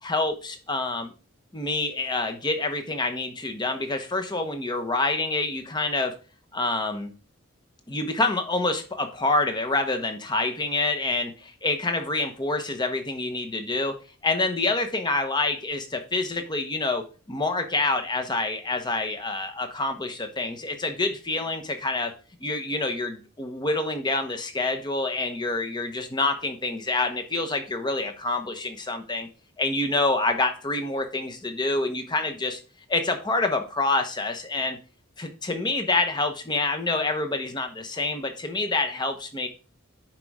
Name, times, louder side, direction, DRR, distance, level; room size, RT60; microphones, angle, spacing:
voice 1, 0.0-1.1 1.5-6.2 6.5-7.1 7.9-14.0 14.2-22.1 22.4-29.3 29.6-32.6 32.9-34.8 35.2-39.5, left 2 dB, 20° left, 6 dB, 1.0 m, -27 dB
10.5 x 4.7 x 3.6 m, 0.36 s
head